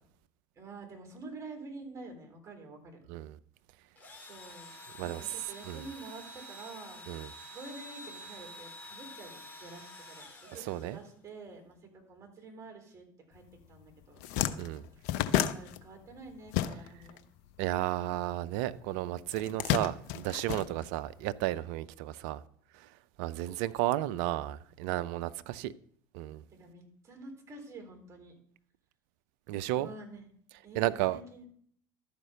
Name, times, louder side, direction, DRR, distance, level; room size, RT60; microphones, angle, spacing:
voice 1, 0.5-3.0 4.2-4.7 5.0-7.0 7.5-14.2 15.0-17.2 23.9-24.3 26.5-28.3 29.7-30.2 30.6-31.4, right 3 dB, 30° right, 3.7 m, -48 dB
Engine / Drill, 4.0-11.3, equal, 15° left, 3.2 m, -48 dB
voice 2, 10.6-11.0 14.6-14.8 17.6-22.4 23.2-25.7 26.1-26.4 29.5-29.9 30.8-31.2, right 15 dB, 65° right, 0.5 m, -33 dB
sound 1, 13.6-13.7 14.0-17.2 17.4-18.6 19.3-21.3, left 12 dB, 65° left, 0.7 m, -32 dB
12.5 x 5.2 x 6.5 m
hypercardioid pair, 75°, 11 cm